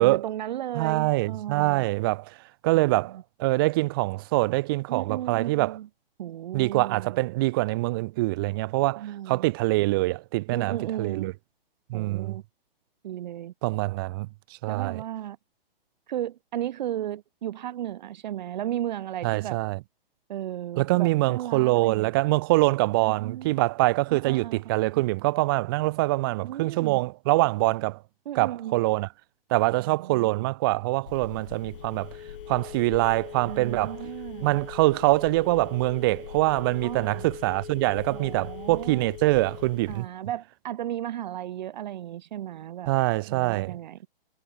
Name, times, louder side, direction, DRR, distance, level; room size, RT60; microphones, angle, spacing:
voice 1, 0.0-1.8 2.7-3.2 4.9-5.9 6.2-7.2 9.0-9.5 10.5-11.3 11.9-12.4 13.0-13.5 14.7-15.4 16.1-19.6 20.3-22.1 23.0-23.6 24.1-25.0 26.4-27.0 28.2-28.8 29.8-30.5 33.5-34.5 36.8-37.3 38.1-39.1 39.9-42.9 43.3-44.0, right 12 dB, 50° right, 1.1 m, -35 dB
voice 2, 0.7-2.3 2.6-5.8 6.5-11.3 11.9-12.4 13.6-14.3 14.6-15.0 19.2-19.8 20.8-28.0 28.3-29.1 29.5-32.1 32.5-34.0 34.4-40.1 42.9-43.8, right 21 dB, 25° right, 0.6 m, -24 dB
Telephone, 31.1-40.0, left 9 dB, 60° left, 3.9 m, -41 dB
hypercardioid pair, 145°, 30 cm